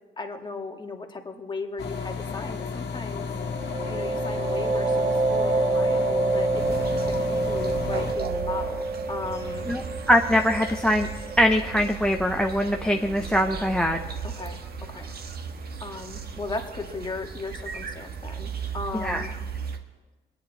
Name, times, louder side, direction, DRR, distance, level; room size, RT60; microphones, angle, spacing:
voice 1, 0.2-3.3 3.9-9.7 14.2-15.1 15.8-19.4, left 3 dB, 20° left, 3 dB, 1.6 m, -36 dB
sound 1, 1.8-8.1, left 5 dB, 60° left, 1.6 m, -33 dB
sound 2, 3.3-12.8, right 2 dB, 35° right, 1.5 m, -28 dB
sound 3, 6.6-19.8, right 6 dB, 50° right, 1.3 m, -36 dB
voice 2, 10.1-11.1 11.4-14.0 19.0-19.2, equal, 5° left, 5 dB, 0.6 m, -22 dB
22.0 x 9.9 x 4.0 m, 1.3 s
cardioid pair, 90°, 20 cm